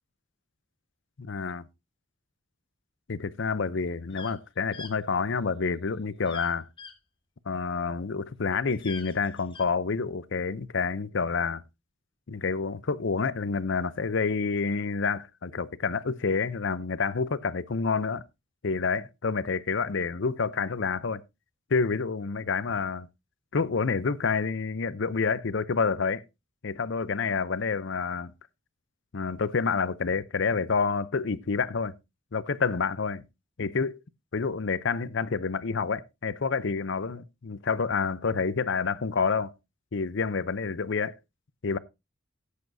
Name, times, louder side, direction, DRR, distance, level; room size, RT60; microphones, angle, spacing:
voice 1, 1.2-1.6 3.1-6.7 7.5-11.6 12.3-18.2 18.6-21.2 21.7-23.1 23.5-26.2 26.6-28.3 29.1-32.0 32.3-33.2 33.6-34.0 34.3-39.5 39.9-41.2 41.6-41.8, left 5 dB, 60° left, 0.6 m, -28 dB
sound 1, 4.1-4.3 4.7-4.9 6.3-6.5 6.8-6.9 8.7-9.6, left 5 dB, 25° left, 1.3 m, -43 dB
14.0 x 8.4 x 2.7 m
head